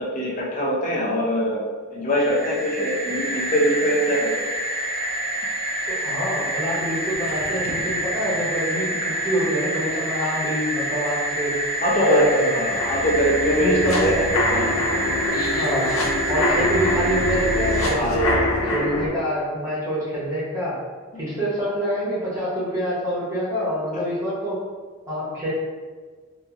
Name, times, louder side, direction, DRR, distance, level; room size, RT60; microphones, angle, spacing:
voice 1, 0.0-1.6 1.9-4.3 11.8-14.1 14.5-14.7 17.9-18.4, equal, 35° left, -4 dB, 0.5 m, -22 dB
sound 1, 2.1-18.0, right 1 dB, 45° right, 0.4 m, -27 dB
voice 2, 5.9-11.5 12.0-12.6 13.6-14.2 15.6-16.0 16.3-20.7 21.2-24.6 25.1-25.5, equal, 15° right, -9 dB, 0.8 m, -26 dB
sound 2, 12.7-19.1, left 1 dB, 80° left, 0.5 m, -24 dB
2.8 x 2.5 x 2.4 m, 1.5 s
head